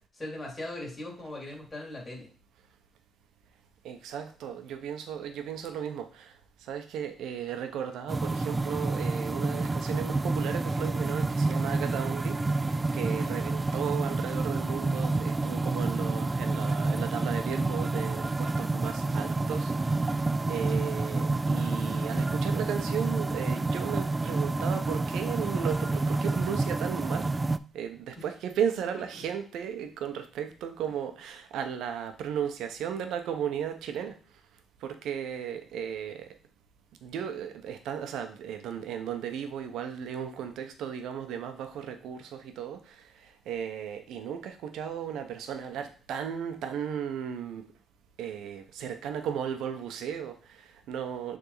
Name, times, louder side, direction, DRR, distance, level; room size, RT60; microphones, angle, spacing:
voice 1, 0.1-2.3 28.2-28.3, left 1 dB, 25° left, -2 dB, 2.8 m, -39 dB
voice 2, 3.8-27.3 27.7-34.2 34.8-36.3 37.0-47.6 48.2-51.4, right 8 dB, 80° right, 7 dB, 0.9 m, -35 dB
sound 1, 8.1-27.6, right 3 dB, 20° right, 0.3 m, -29 dB
6.9 x 3.6 x 4.0 m, 0.40 s
cardioid pair, 90°, 0 cm